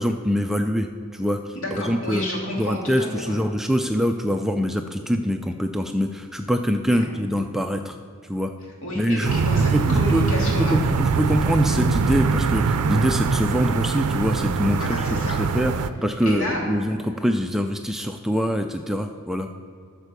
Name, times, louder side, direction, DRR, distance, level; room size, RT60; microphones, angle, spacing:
voice 1, 0.0-2.2 2.6-8.0 8.3-8.5 8.9-10.2 10.6-19.5, equal, ahead, 5 dB, 0.3 m, -24 dB
voice 2, 1.5-3.4 6.9-7.0 8.8-10.8 14.7-15.4 16.2-16.6, left 1 dB, 65° left, -2 dB, 2.5 m, -30 dB
sound 1, 9.2-15.9, right 4 dB, 80° right, 0.5 m, -22 dB
13.0 x 4.4 x 6.7 m, 2.3 s
head